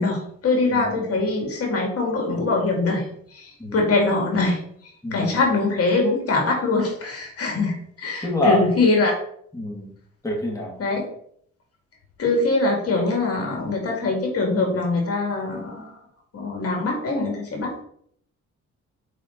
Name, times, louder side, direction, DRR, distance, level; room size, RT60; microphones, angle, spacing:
voice 1, 0.0-3.0 3.3-4.6 5.1-9.1 10.8-11.0 12.2-15.9 16.3-17.7, left 3 dB, 50° left, 1 dB, 2.3 m, -23 dB
voice 2, 0.7-1.1 3.6-3.8 5.0-5.4 8.2-8.6 9.5-9.9 10.2-10.8, left 1 dB, 10° left, -2 dB, 2.3 m, -25 dB
6.6 x 5.0 x 4.0 m, 0.66 s
cardioid pair, 90°, 30 cm